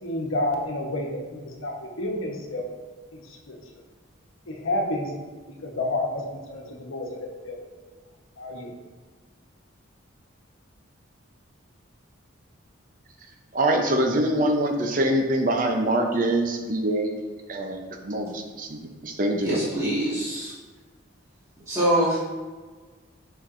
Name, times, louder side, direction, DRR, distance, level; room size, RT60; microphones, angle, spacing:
voice 1, 0.0-2.7 3.1-3.6 4.5-5.1 5.6-6.2 6.5-7.6 8.4-8.7, left 1 dB, 85° left, 0 dB, 1.1 m, -30 dB
voice 2, 13.5-19.6, right 1 dB, 40° right, 3 dB, 0.6 m, -24 dB
voice 3, 19.4-20.5 21.7-22.2, right 1 dB, 15° right, -10 dB, 1.7 m, -24 dB
7.0 x 5.8 x 2.6 m, 1.4 s
head